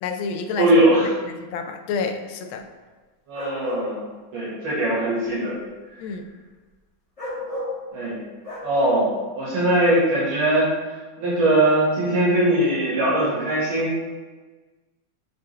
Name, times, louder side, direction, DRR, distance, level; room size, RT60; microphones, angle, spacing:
voice 1, 0.0-0.7 1.3-2.6 6.0-6.3, left 5 dB, 80° left, 6 dB, 1.4 m, -29 dB
voice 2, 0.6-1.1 3.3-4.0 4.3-5.6 7.9-8.2 8.6-10.7 11.2-13.9, right 1 dB, 80° right, -8 dB, 2.5 m, -20 dB
sound 1, 3.3-3.8 7.2-7.7 8.4-8.7, left 1 dB, 20° left, 1.3 m, -31 dB
7.8 x 4.0 x 3.3 m, 1.3 s
omnidirectional pair, 2.2 m